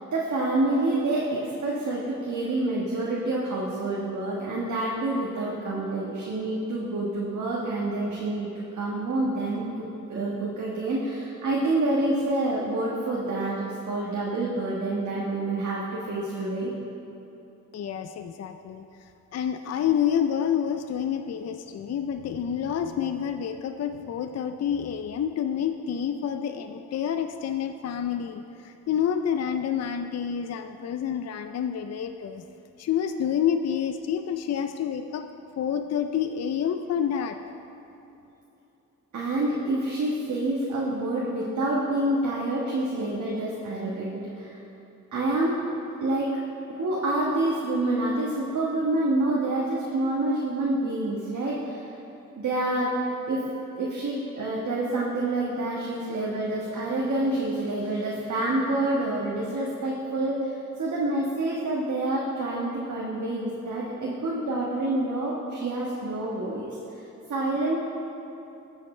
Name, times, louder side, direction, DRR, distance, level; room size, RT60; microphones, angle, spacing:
voice 1, 0.1-16.7 39.1-44.5 45.1-45.6 46.0-46.4 46.7-51.9 52.3-53.0 53.3-53.4 53.8-67.8, right 2 dB, 65° right, -5 dB, 1.4 m, -27 dB
voice 2, 17.7-18.9 19.3-32.4 32.8-35.3 35.6-37.4, left 8 dB, 55° left, 7 dB, 0.5 m, -28 dB
14.5 x 5.7 x 4.3 m, 2.9 s
cardioid pair, 65°, 31 cm